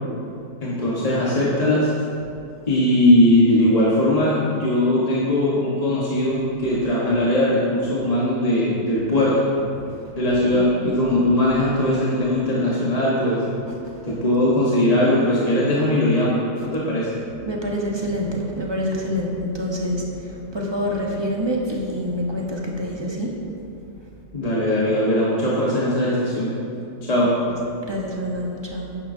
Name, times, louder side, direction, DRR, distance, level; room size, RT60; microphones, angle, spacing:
voice 1, 0.6-1.9 2.7-9.4 10.2-13.4 14.0-17.1 24.3-26.5 27.1-27.3, left 1 dB, 30° left, -7 dB, 1.4 m, -20 dB
voice 2, 9.8-10.2 10.5-10.6 13.7-14.0 17.3-23.4 27.2-29.0, equal, 20° right, -2 dB, 1.1 m, -27 dB
11.0 x 9.8 x 2.7 m, 2.6 s
omnidirectional pair, 1.3 m